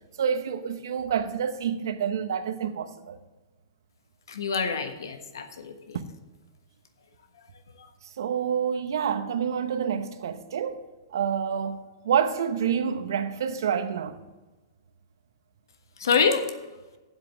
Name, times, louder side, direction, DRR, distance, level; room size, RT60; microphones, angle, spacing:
voice 1, 0.2-3.2 5.9-6.0 8.2-10.8 11.1-11.8 12.0-14.2, right 7 dB, 75° right, 0.9 m, -28 dB
voice 2, 4.3-6.0 16.0-16.4, left 5 dB, 90° left, 1.3 m, -26 dB
8.2 x 7.5 x 7.1 m
hypercardioid pair, 140°, 2 cm